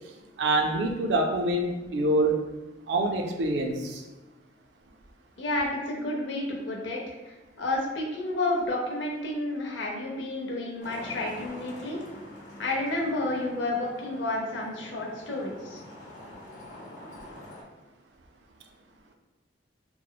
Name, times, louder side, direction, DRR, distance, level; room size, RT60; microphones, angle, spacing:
voice 1, 0.4-2.4 2.9-4.0, right 1 dB, 70° right, 2 dB, 0.4 m, -25 dB
voice 2, 5.4-12.0 12.6-15.8, left 2 dB, 90° left, -1 dB, 0.6 m, -31 dB
Traffic noise roadway noise, 10.8-17.6, left 1 dB, 45° left, 0.5 m, -45 dB
3.0 x 2.0 x 2.2 m, 1.1 s
head